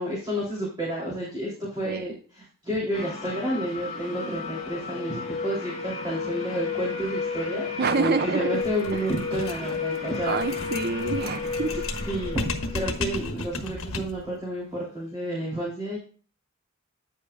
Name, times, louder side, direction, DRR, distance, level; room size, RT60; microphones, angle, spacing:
voice 1, 0.0-7.7 8.0-10.4 11.7-16.0, right 1 dB, 20° right, -5 dB, 3.0 m, -31 dB
sound 1, 1.0-2.1 4.1-5.6 6.4-6.5 6.7-7.3 9.3-11.2 12.1-12.8, right 2 dB, 85° right, 1.9 m, -47 dB
sound 2, 2.9-13.5, left 5 dB, 35° left, 2.3 m, -33 dB
voice 2, 7.8-8.6 8.9-9.0 10.3-11.8, right 4 dB, 50° right, 11 dB, 0.7 m, -27 dB
sound 3, 8.6-14.3, left 2 dB, 75° left, 1.4 m, -34 dB
9.7 x 8.3 x 2.3 m, 0.40 s
head